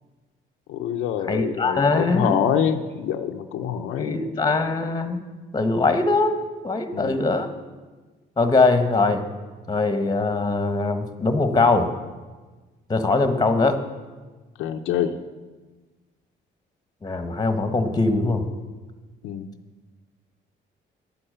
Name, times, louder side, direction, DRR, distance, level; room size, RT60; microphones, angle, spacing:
voice 1, 0.7-4.3 6.9-7.3 14.6-15.2 19.2-19.5, left 9 dB, 90° left, 6 dB, 0.7 m, -26 dB
voice 2, 1.3-2.4 4.0-5.2 5.5-6.4 6.6-7.5 8.4-9.2 9.7-11.9 12.9-13.8 17.0-18.4, left 3 dB, 20° left, 8 dB, 1.3 m, -21 dB
10.5 x 8.6 x 6.7 m, 1.3 s
cardioid pair, 90°, 20 cm